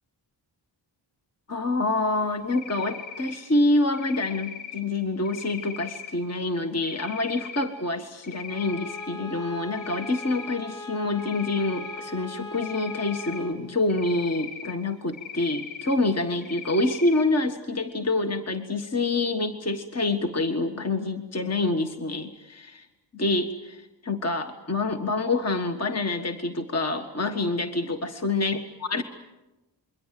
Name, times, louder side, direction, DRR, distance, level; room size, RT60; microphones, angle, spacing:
voice 1, 1.5-22.9 23.1-29.0, left 2 dB, 35° left, 7 dB, 1.5 m, -27 dB
Cricket, 2.5-3.4 3.9-4.8 5.2-6.1 6.8-7.6 8.1-9.1 9.4-10.6 11.2-12.0 12.5-13.4 13.9-14.7 15.1-15.9 16.4-17.2, left 7 dB, 80° left, 6.1 m, -39 dB
Bowed string instrument, 8.5-13.6, left 2 dB, 10° left, 4.4 m, -40 dB
27.5 x 23.0 x 7.6 m, 1.1 s
wide cardioid pair, 80°, 45 cm